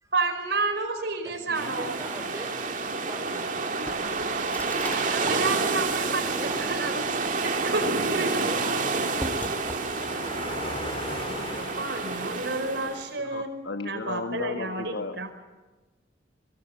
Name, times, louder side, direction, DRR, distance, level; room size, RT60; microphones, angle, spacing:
voice 1, 0.1-2.0 5.0-8.5 11.3-13.5 13.8-15.3, right 3 dB, 60° right, 6 dB, 5.1 m, -31 dB
voice 2, 1.2-2.6 3.0-3.6 6.1-6.6 8.4-9.4, right 1 dB, 15° right, 5 dB, 5.2 m, -41 dB
sound 1, 1.5-13.1, right 3 dB, 40° right, 2.7 m, -29 dB
Car passing by, 3.1-13.0, left 2 dB, 30° left, 2.1 m, -42 dB
sound 2, 3.8-10.2, left 1 dB, 10° left, 2.2 m, -42 dB
voice 3, 12.8-15.3, left 3 dB, 75° left, 8 dB, 1.3 m, -35 dB
25.0 x 25.0 x 7.8 m, 1.2 s
head